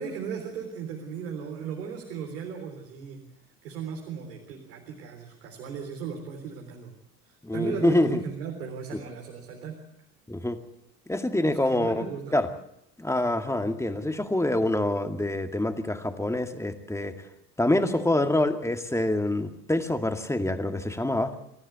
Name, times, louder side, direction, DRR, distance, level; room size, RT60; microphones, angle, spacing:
voice 1, 0.0-3.2 3.6-6.9 7.2-9.8 11.4-12.4, right 7 dB, 70° right, 2 dB, 3.8 m, -36 dB
voice 2, 7.4-8.2 10.3-10.6 11.1-12.0 12.3-12.5 13.0-17.1 17.6-21.3, left 1 dB, 5° left, 6 dB, 2.2 m, -26 dB
27.5 x 14.5 x 8.1 m, 0.78 s
figure-of-eight pair, 65°, 48 cm